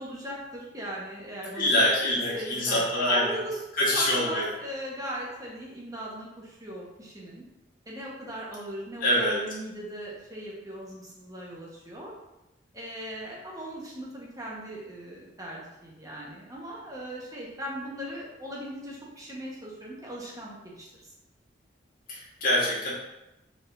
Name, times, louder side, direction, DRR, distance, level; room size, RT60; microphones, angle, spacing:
voice 1, 0.0-1.7 2.1-7.4 7.9-12.1 12.7-21.1, right 1 dB, 20° right, -4 dB, 1.1 m, -38 dB
voice 2, 1.5-3.3 3.8-4.5 9.0-9.4 22.1-22.9, left 1 dB, 50° left, -6 dB, 1.7 m, -25 dB
4.9 x 4.3 x 2.6 m, 0.93 s
head